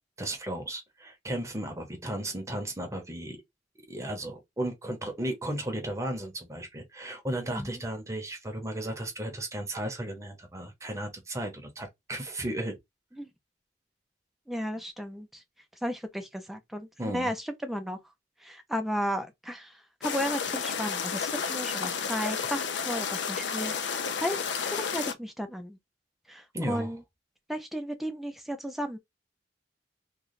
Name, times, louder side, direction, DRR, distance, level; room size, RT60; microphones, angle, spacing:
voice 1, 0.2-3.4 3.9-12.8 17.0-17.3 26.5-26.9, right 1 dB, 15° right, 0.9 m, -35 dB
voice 2, 14.5-15.4 15.8-18.0 18.4-24.4 24.7-25.8 26.3-27.0 27.5-29.0, equal, ahead, 0.5 m, -34 dB
sound 1, 20.0-25.1, left 6 dB, 75° left, 0.5 m, -31 dB
3.2 x 2.3 x 4.0 m
head